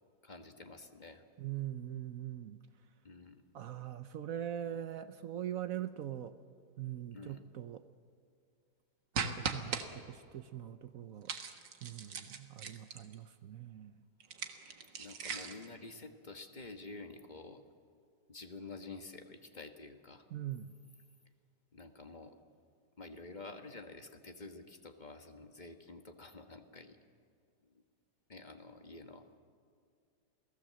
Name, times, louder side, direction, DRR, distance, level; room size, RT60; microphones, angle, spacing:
voice 1, 0.2-1.2 3.0-3.4 7.1-7.4 14.9-17.6 18.3-20.3 21.7-22.3 23.0-27.0 27.7-27.8 28.3-29.3, left 3 dB, 30° left, 6 dB, 1.3 m, -49 dB
voice 2, 1.4-2.6 3.5-6.4 6.8-7.8 9.2-11.3 11.8-13.9 20.3-20.7, right 11 dB, 60° right, 11 dB, 1.0 m, -42 dB
sound 1, 9.1-9.8 11.3-13.1 14.2-15.7, right 5 dB, 75° right, 2.1 m, -39 dB
29.0 x 18.0 x 7.6 m, 2.3 s
omnidirectional pair, 1.9 m